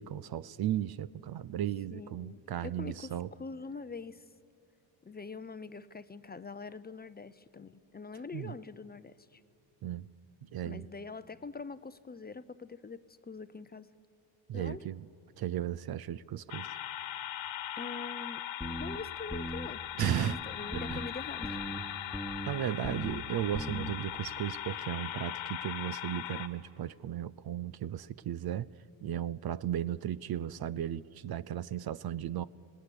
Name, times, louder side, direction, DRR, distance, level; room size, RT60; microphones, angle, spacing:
voice 1, 0.0-3.3 8.3-8.5 9.8-10.1 10.5-10.8 14.5-15.0 15.4-16.7 20.0-20.4 20.7-21.0 22.5-28.7 29.0-32.5, right 11 dB, 50° right, 0.6 m, -35 dB
voice 2, 1.9-4.3 5.0-9.4 10.6-13.9 14.5-14.8 17.8-19.8 20.2-21.6, left 4 dB, 20° left, 0.6 m, -44 dB
sound 1, 16.5-26.5, left 11 dB, 75° left, 1.5 m, -40 dB
sound 2, 18.6-19.0 19.3-19.7 20.0-20.4 20.7-21.1 21.4-21.8 22.1-22.5 22.8-23.2 23.5-23.9, equal, ahead, 1.3 m, -38 dB
26.0 x 18.5 x 9.8 m
cardioid pair, 95°, 48 cm